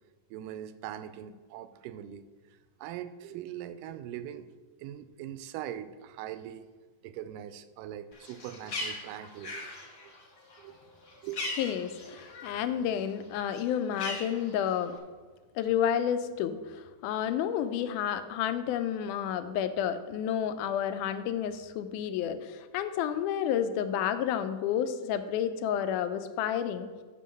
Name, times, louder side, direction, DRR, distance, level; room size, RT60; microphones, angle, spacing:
voice 1, 0.3-6.7 7.0-9.7 10.6-10.8 11.2-11.4, right 11 dB, 85° right, 12 dB, 2.2 m, -42 dB
Bird, 8.1-12.7 13.0-15.0, left 2 dB, 45° left, 1.3 m, -40 dB
voice 2, 11.6-14.9 15.6-26.9, left 9 dB, 80° left, 10 dB, 2.0 m, -30 dB
8.2 x 5.8 x 6.2 m, 1.4 s
omnidirectional pair, 3.8 m